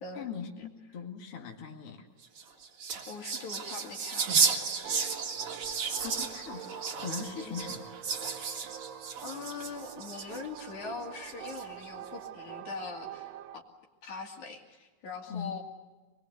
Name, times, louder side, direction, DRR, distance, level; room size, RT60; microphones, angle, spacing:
voice 1, 0.1-2.1 6.0-6.7 7.0-7.9 15.3-15.5, left 6 dB, 50° left, 1 dB, 2.9 m, -40 dB
sound 1, 2.2-10.6 11.2-11.8, right 5 dB, 50° right, 2.7 m, -33 dB
voice 2, 3.1-4.5 7.4-7.6 9.2-13.6 14.0-15.6, left 5 dB, 70° left, 2 dB, 4.0 m, -42 dB
sound 2, 4.8-13.6, right 10 dB, 70° right, 1.8 m, -45 dB
25.0 x 21.5 x 8.0 m, 1.3 s
omnidirectional pair, 3.5 m